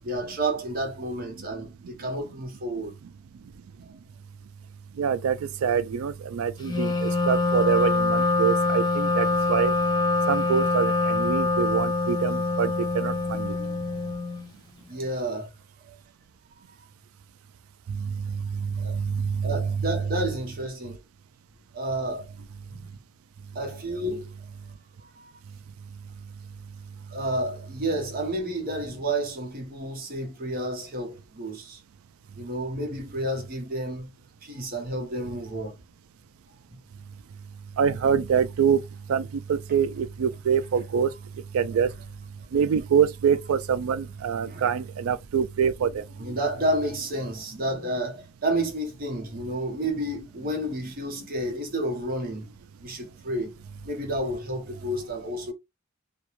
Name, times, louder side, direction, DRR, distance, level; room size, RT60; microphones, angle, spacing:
voice 1, 0.0-2.9 3.8-3.9 13.5-13.9 14.9-16.0 18.8-19.0 19.4-21.0 21.7-22.8 23.5-24.3 25.0-25.3 27.1-31.8 32.4-34.1 34.4-35.8 36.7-36.8 44.5-44.7 46.2-52.5 52.8-55.5, right 1 dB, 45° right, 0.9 m, -31 dB
voice 2, 5.0-9.7 10.3-13.5 17.9-19.9 37.8-38.8 39.1-41.1 41.5-41.9 42.5-46.0, right 7 dB, 85° right, 0.3 m, -25 dB
Wind instrument woodwind instrument, 6.6-14.5, left 3 dB, 20° left, 0.5 m, -25 dB
2.4 x 2.2 x 3.0 m
head